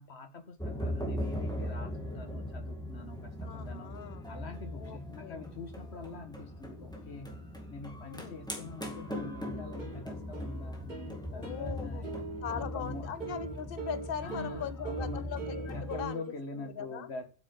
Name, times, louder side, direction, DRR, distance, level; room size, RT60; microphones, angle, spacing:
voice 1, 0.0-3.9 4.3-7.3 7.7-12.2 12.6-13.1 14.2-15.3 15.7-17.3, left 3 dB, 80° left, 1.8 m, -45 dB
sound 1, 0.6-16.1, equal, 5° left, 2.0 m, -39 dB
voice 2, 3.4-4.2 4.7-5.4 8.0-8.4 11.3-12.0 12.4-16.2 16.5-17.1, left 8 dB, 60° left, 1.0 m, -40 dB
sound 2, 9.5-16.3, right 4 dB, 45° right, 4.4 m, -42 dB
8.4 x 6.8 x 8.2 m
omnidirectional pair, 1.1 m